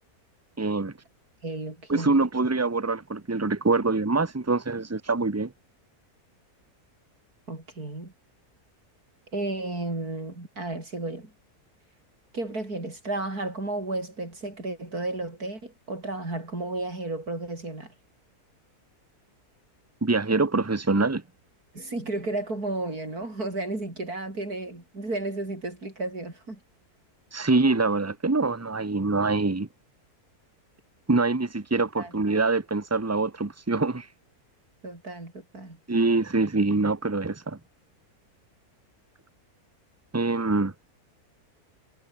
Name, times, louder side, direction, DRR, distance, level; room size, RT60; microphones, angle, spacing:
voice 1, 0.6-0.9 1.9-5.5 20.0-21.2 27.3-29.7 31.1-34.1 35.9-37.6 40.1-40.7, right 3 dB, 10° right, 1.1 m, -24 dB
voice 2, 1.4-2.2 7.5-8.1 9.3-11.3 12.3-17.9 21.7-26.6 32.0-32.2 34.8-35.8, right 2 dB, 75° right, 6.9 m, -33 dB
omnidirectional pair, 1.6 m